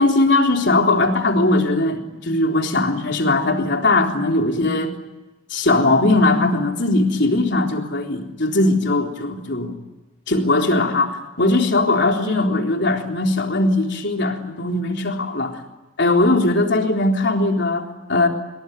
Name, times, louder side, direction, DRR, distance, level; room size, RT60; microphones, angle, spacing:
voice 1, 0.0-4.9 5.5-9.7 10.3-15.6 16.0-18.3, left 2 dB, 55° left, 2 dB, 3.9 m, -19 dB
26.5 x 23.0 x 9.4 m, 1.1 s
head